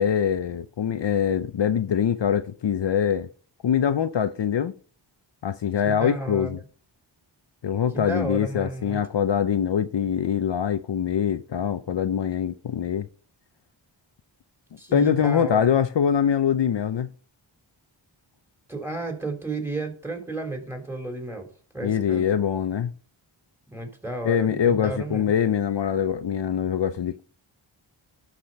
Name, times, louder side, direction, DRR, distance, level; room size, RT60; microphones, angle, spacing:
voice 1, 0.0-3.3 3.6-4.7 5.4-6.6 7.6-13.1 14.9-17.1 21.8-22.9 24.2-27.2, left 8 dB, 60° left, 0.6 m, -23 dB
voice 2, 5.8-6.6 7.9-9.0 14.8-15.8 18.7-21.5 21.7-22.2 23.7-25.2, right 2 dB, 5° right, 3.3 m, -32 dB
12.0 x 5.1 x 5.3 m
wide cardioid pair, 60°, 48 cm